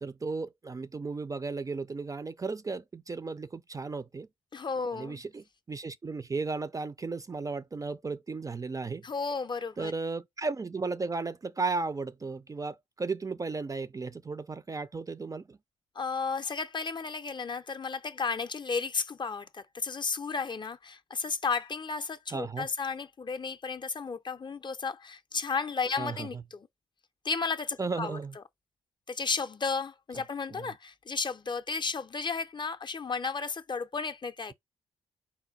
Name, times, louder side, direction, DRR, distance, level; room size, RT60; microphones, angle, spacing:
voice 1, 0.0-4.3 4.9-9.1 9.8-15.6 22.3-22.7 26.0-26.3 27.8-28.3 30.5-30.7, right 4 dB, 25° right, 0.4 m, -35 dB
voice 2, 4.5-5.2 9.0-9.9 16.0-26.7 27.2-28.2 29.1-34.5, left 5 dB, 30° left, 0.5 m, -33 dB
4.2 x 2.2 x 3.8 m
hypercardioid pair, 40°, 15 cm